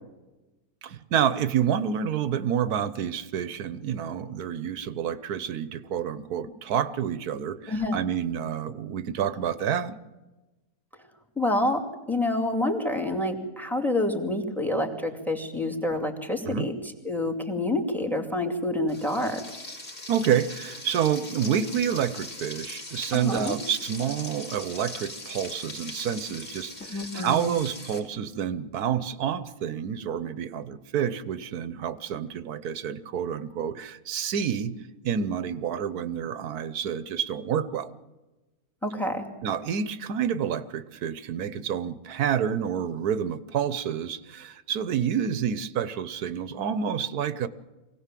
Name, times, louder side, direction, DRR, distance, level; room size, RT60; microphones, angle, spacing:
voice 1, 0.8-10.0 16.4-16.7 20.1-37.9 39.4-47.5, right 8 dB, 90° right, 15 dB, 1.4 m, -28 dB
voice 2, 7.7-8.0 11.4-16.7 17.0-19.4 23.1-23.6 26.9-27.5 38.8-39.3, left 1 dB, ahead, 5 dB, 2.3 m, -27 dB
Frying (food), 18.9-28.0, left 2 dB, 55° left, 3.4 m, -40 dB
24.0 x 17.5 x 7.5 m, 1.1 s
omnidirectional pair, 1.6 m